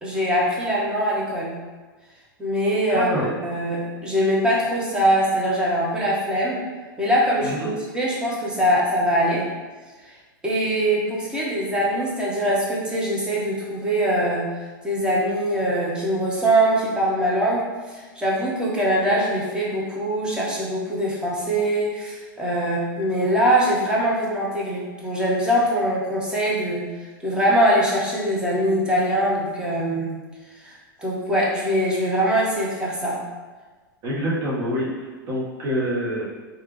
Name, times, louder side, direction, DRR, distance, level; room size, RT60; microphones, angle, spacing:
voice 1, 0.0-1.5 2.4-6.6 7.0-9.5 10.4-14.4 14.8-17.6 17.9-26.9 27.2-30.1 30.6-30.7 31.0-33.2, equal, 5° right, -5 dB, 0.8 m, -22 dB
voice 2, 2.9-3.3 7.4-7.7 34.0-34.9 35.3-36.2, equal, 40° right, -4 dB, 1.0 m, -26 dB
3.3 x 2.3 x 3.1 m, 1.3 s
figure-of-eight pair, 100°, 12 cm